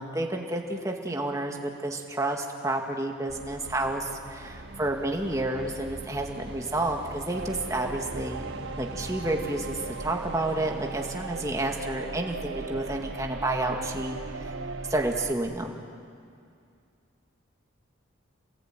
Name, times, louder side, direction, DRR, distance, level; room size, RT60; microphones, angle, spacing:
voice 1, 0.0-8.5 8.8-14.5 14.9-15.8, right 1 dB, 15° right, 2 dB, 2.1 m, -30 dB
sound 1, 3.3-16.1, right 1 dB, 55° right, 2.2 m, -44 dB
sound 2, 7.3-15.3, right 3 dB, 85° right, 1.0 m, -37 dB
28.5 x 20.0 x 9.3 m, 2.2 s
head